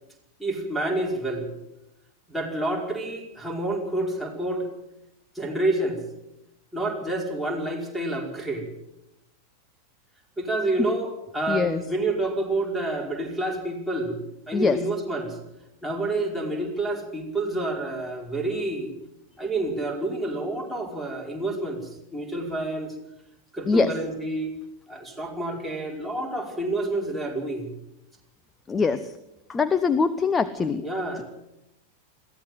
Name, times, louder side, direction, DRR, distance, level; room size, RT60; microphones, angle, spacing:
voice 1, 0.4-1.5 2.3-4.7 5.4-6.0 6.7-8.7 10.4-14.2 14.5-15.4 15.8-18.9 19.4-22.9 23.5-24.5 24.9-27.7 30.8-31.2, right 2 dB, ahead, -2 dB, 5.2 m, -28 dB
voice 2, 11.5-11.8 14.5-14.8 23.7-23.9 28.7-29.1 29.5-30.8, left 4 dB, 15° left, 12 dB, 0.9 m, -23 dB
21.5 x 16.0 x 7.8 m, 0.86 s
figure-of-eight pair, 90°, 0 cm